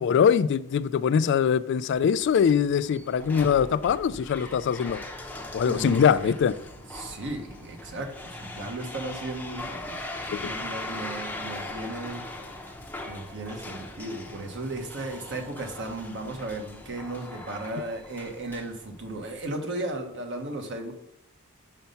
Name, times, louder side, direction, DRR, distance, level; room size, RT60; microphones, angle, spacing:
voice 1, 0.0-5.1 5.5-6.5 10.3-10.4, left 7 dB, 55° left, 0.3 m, -22 dB
sound 1, 1.9-19.4, left 2 dB, 10° left, 0.7 m, -40 dB
voice 2, 5.6-6.3 6.9-12.3 13.1-20.9, right 2 dB, 60° right, 1.2 m, -35 dB
5.7 x 5.3 x 5.5 m
head